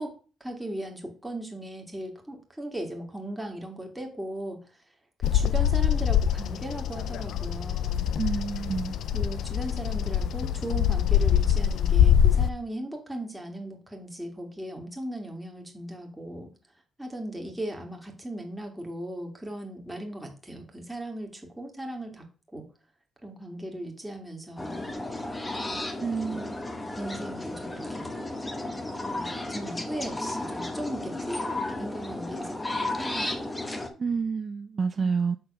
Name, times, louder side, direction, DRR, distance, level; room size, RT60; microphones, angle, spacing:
voice 1, 0.0-4.6 5.2-8.1 9.1-16.5 17.0-22.3 22.5-22.7 23.2-24.9 26.2-26.5 27.0-28.2 29.1-33.5, right 1 dB, 5° right, 2 dB, 2.1 m, -37 dB
Bird vocalization bird call bird song, 5.2-12.5, left 9 dB, 75° left, 0.5 m, -24 dB
voice 2, 8.2-9.0 26.0-26.6 34.0-35.4, right 5 dB, 40° right, 9 dB, 0.4 m, -29 dB
sound 1, 24.6-33.9, left 2 dB, 20° left, 1.2 m, -33 dB
6.8 x 3.9 x 5.5 m, 0.37 s
cardioid pair, 90°, 0 cm